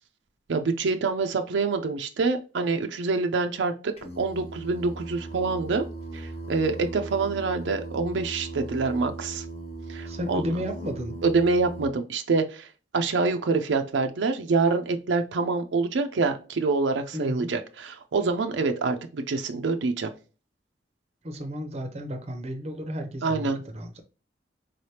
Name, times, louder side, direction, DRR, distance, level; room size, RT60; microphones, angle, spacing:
voice 1, 0.5-5.9 6.1-9.5 9.9-10.4 11.2-12.7 12.9-20.1 23.2-23.6, right 4 dB, 80° right, 0.4 m, -26 dB
Singing, 4.0-11.9, right 2 dB, 35° left, 0.7 m, -38 dB
voice 2, 10.1-11.2 17.1-17.5 21.2-24.0, equal, 35° right, 0.6 m, -33 dB
3.8 x 3.3 x 2.8 m
head